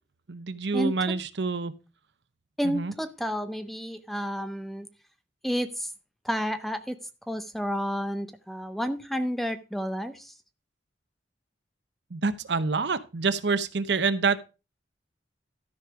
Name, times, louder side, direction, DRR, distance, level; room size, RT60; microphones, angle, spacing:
voice 1, 0.3-1.7 2.6-2.9 12.1-14.4, right 4 dB, 65° right, 0.7 m, -27 dB
voice 2, 2.6-4.9 5.4-5.9 6.2-7.0 7.3-10.3, equal, ahead, 0.6 m, -30 dB
13.0 x 5.1 x 4.7 m
head